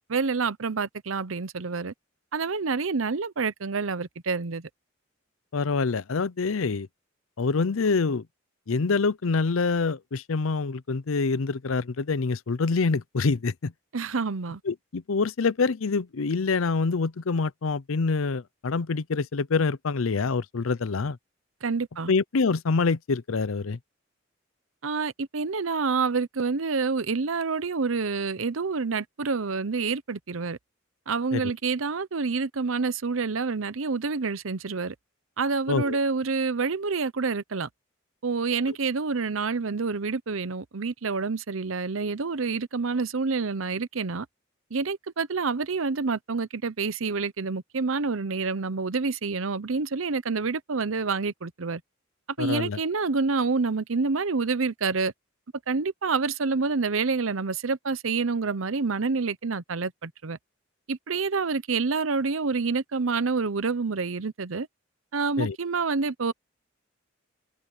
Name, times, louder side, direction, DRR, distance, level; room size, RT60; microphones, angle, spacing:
voice 1, 0.1-1.9 2.3-4.7 13.9-14.6 21.6-22.1 24.8-30.6 31.1-34.9 35.4-37.7 38.2-44.3 44.7-51.8 52.4-55.1 55.7-60.4 60.9-64.7 65.1-66.3, right 4 dB, 75° right, 0.8 m, -28 dB
voice 2, 5.5-6.9 7.4-8.2 8.7-13.7 14.7-21.2 22.1-23.8 31.3-31.5 35.7-36.0 38.7-38.8 52.4-52.8 65.4-65.6, left 4 dB, 85° left, 0.6 m, -26 dB
head